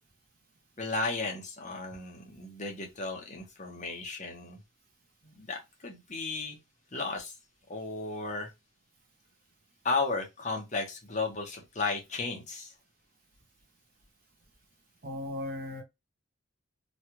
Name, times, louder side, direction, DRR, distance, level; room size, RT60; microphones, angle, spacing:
voice 1, 0.8-4.6 5.2-6.6 6.9-7.3 7.7-8.5 9.8-12.7, left 3 dB, 35° left, 0.9 m, -34 dB
voice 2, 15.0-15.8, left 1 dB, 45° right, 0.7 m, -36 dB
3.1 x 2.4 x 2.8 m
head